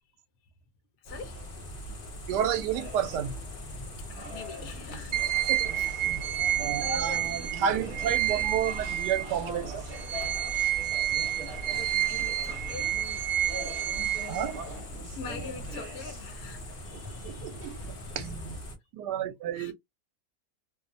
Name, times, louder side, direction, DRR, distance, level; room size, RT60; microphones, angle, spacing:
voice 1, 1.0-1.4 4.1-5.2 5.7-6.1 6.8-7.5 11.7-13.4 15.2-17.6 18.1-18.2 19.5-19.7, left 4 dB, 70° left, 1.0 m, -44 dB
sound 1, 1.1-18.8, equal, 50° left, 0.7 m, -42 dB
voice 2, 2.3-3.3 5.5-9.8 13.6-13.7 14.3-14.6 17.2-18.6 18.9-19.7, right 9 dB, 90° right, 1.2 m, -31 dB
sound 2, 2.7-18.5, equal, 45° right, 1.2 m, -44 dB
sound 3, 5.1-9.5 9.9-14.8, right 12 dB, 70° right, 0.9 m, -30 dB
2.9 x 2.0 x 2.5 m
omnidirectional pair, 1.7 m